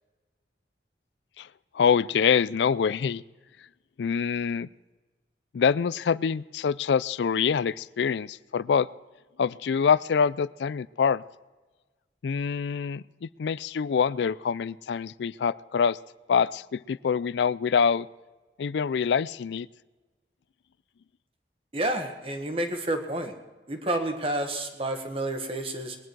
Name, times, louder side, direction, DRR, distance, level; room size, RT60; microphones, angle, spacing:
voice 1, 1.7-3.2 4.0-4.7 5.5-8.9 9.4-11.2 12.2-16.0 16.3-18.1 18.6-19.7, left 6 dB, 80° left, 20 dB, 0.4 m, -25 dB
voice 2, 21.7-23.4 23.7-26.0, right 1 dB, 30° right, 5 dB, 1.5 m, -30 dB
21.0 x 10.0 x 4.6 m, 1.3 s
head